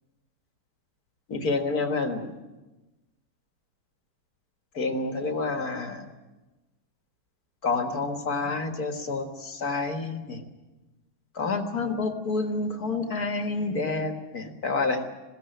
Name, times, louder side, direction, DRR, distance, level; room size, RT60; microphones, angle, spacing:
voice 1, 1.3-2.3 4.8-6.0 7.6-10.4 11.4-15.0, left 3 dB, 50° left, 5 dB, 2.1 m, -28 dB
21.0 x 16.5 x 9.1 m, 1.1 s
omnidirectional pair, 2.2 m